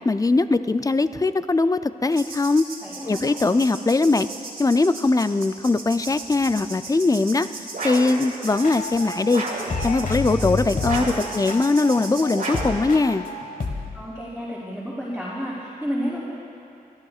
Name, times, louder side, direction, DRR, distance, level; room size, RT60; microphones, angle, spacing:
voice 1, 0.0-2.7 3.1-4.3 4.6-7.5 7.8-9.4 9.8-13.3, left 3 dB, 20° left, 12 dB, 0.4 m, -21 dB
sound 1, 2.1-12.6, right 3 dB, 75° right, 2.5 m, -38 dB
voice 2, 2.8-3.4 10.9-11.5 13.9-16.2, equal, 5° left, -9 dB, 3.3 m, -32 dB
sound 2, 7.7-8.2 9.3-9.8 10.8-11.3 12.3-12.8, right 2 dB, 60° right, 2.3 m, -30 dB
sound 3, 8.5-9.4 9.7-14.1, left 3 dB, 60° left, 1.5 m, -30 dB
29.5 x 12.5 x 2.4 m, 2.6 s
cardioid pair, 65°, 16 cm